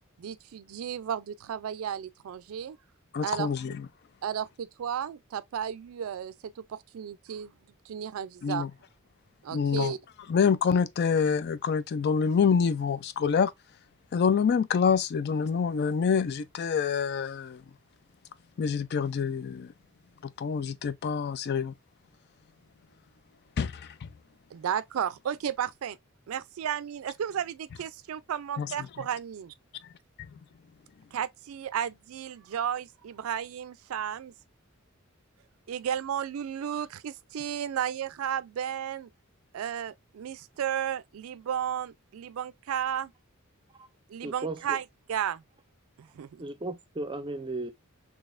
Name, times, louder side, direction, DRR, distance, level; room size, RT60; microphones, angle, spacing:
voice 1, 0.2-2.8 3.2-3.5 4.2-7.5 7.9-8.7 9.4-10.0 24.5-26.0 26.3-29.5 31.1-34.3 35.7-39.1 39.5-43.1 44.1-45.4 46.0-46.4, right 9 dB, 75° right, 0.4 m, -33 dB
voice 2, 3.1-3.9 8.4-8.7 9.5-10.0 10.3-13.5 14.1-17.7 18.6-19.7 20.2-21.7 23.6-24.1 28.6-29.1 30.2-30.5, left 6 dB, 50° left, 0.4 m, -27 dB
voice 3, 44.2-44.8 46.4-47.7, right 2 dB, 25° right, 0.5 m, -35 dB
3.9 x 2.9 x 2.4 m
head